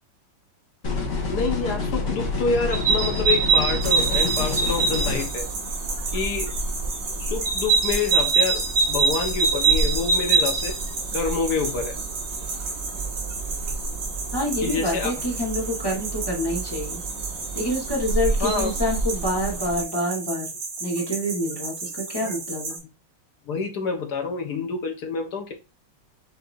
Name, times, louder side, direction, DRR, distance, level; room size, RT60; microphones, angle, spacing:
sound 1, 0.8-5.2, left 3 dB, 45° left, 1.5 m, -28 dB
voice 1, 1.3-5.5 6.1-6.5 7.2-10.7 11.1-12.0 14.6-15.1 18.4-18.7 23.5-25.5, left 4 dB, 65° left, 1.4 m, -27 dB
sound 2, 2.7-19.8, right 4 dB, 55° right, 0.6 m, -26 dB
sound 3, 3.8-22.8, right 3 dB, 85° right, 2.3 m, -33 dB
voice 2, 14.3-17.0 17.5-20.5 20.8-22.8, equal, 15° left, 1.3 m, -27 dB
6.7 x 2.8 x 2.6 m
omnidirectional pair, 1.9 m